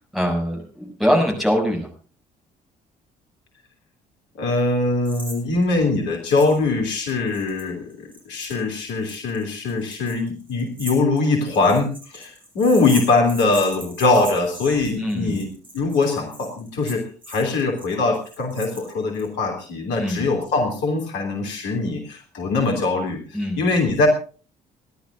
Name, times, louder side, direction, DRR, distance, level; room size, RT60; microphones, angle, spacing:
voice 1, 0.1-1.9 15.0-15.3 20.0-20.2 23.3-23.6, equal, ahead, 1 dB, 6.9 m, -22 dB
voice 2, 4.4-24.1, left 3 dB, 60° left, 3 dB, 3.0 m, -22 dB
sound 1, 5.1-5.4 5.6-5.7 6.3-6.6 6.9-19.3, right 1 dB, 25° right, 7.0 m, -39 dB
28.5 x 12.0 x 2.5 m, 0.38 s
figure-of-eight pair, 50°, 21 cm